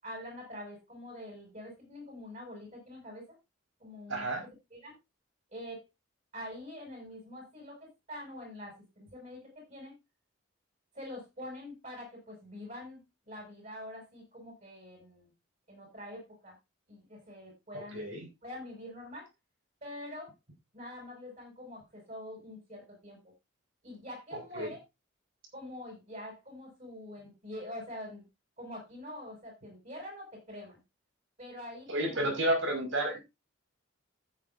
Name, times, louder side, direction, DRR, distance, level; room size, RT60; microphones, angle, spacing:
voice 1, 0.0-3.3 3.8-4.3 4.7-5.0 5.5-5.8 6.3-10.0 10.9-15.3 15.7-16.6 16.9-18.1 18.4-19.3 19.8-20.3 20.7-23.2 23.8-24.8 25.5-28.2 28.6-30.8 31.4-32.3, left 1 dB, 40° right, 0 dB, 7.4 m, -45 dB
voice 2, 4.1-4.4 17.9-18.2 24.5-24.7 31.9-33.2, right 1 dB, 70° right, 3 dB, 5.5 m, -30 dB
14.0 x 9.8 x 2.7 m, 0.23 s
head